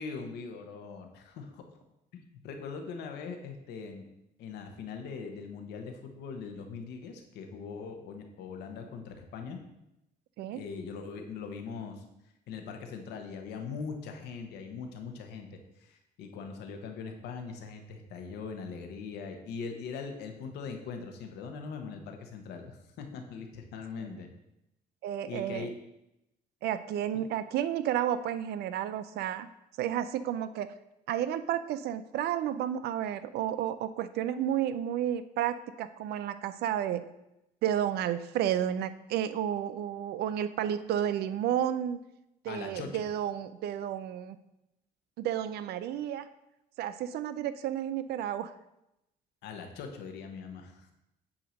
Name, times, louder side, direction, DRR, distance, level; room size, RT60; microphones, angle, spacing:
voice 1, 0.0-1.6 2.4-4.1 4.4-9.6 10.5-12.0 12.5-24.3 25.3-25.7 42.5-43.0 49.4-50.9, left 5 dB, 85° left, 4 dB, 1.2 m, -41 dB
voice 2, 25.0-25.7 26.6-29.5 29.8-30.7 31.1-37.0 37.6-42.0 42.4-44.4 45.2-46.3 46.8-48.5, right 10 dB, 70° right, 13 dB, 0.5 m, -31 dB
8.7 x 2.9 x 6.4 m, 0.88 s
cardioid pair, 110°, 17 cm